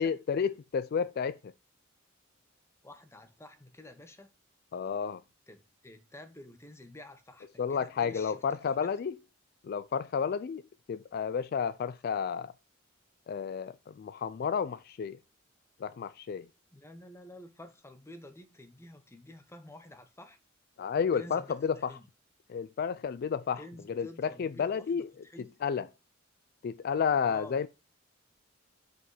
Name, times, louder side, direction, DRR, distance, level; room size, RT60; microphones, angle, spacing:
voice 1, 0.0-1.5 4.7-5.2 7.6-9.1 9.6-10.6 10.9-12.5 13.3-15.2 15.8-16.5 20.8-21.9 22.5-23.6 23.9-25.1 25.6-25.9 26.6-27.7, left 6 dB, 50° left, 0.3 m, -31 dB
voice 2, 2.8-4.3 5.5-8.9 16.7-20.4 21.1-22.1 23.6-25.5 27.2-27.6, left 1 dB, 15° left, 1.0 m, -50 dB
5.5 x 5.2 x 5.5 m
head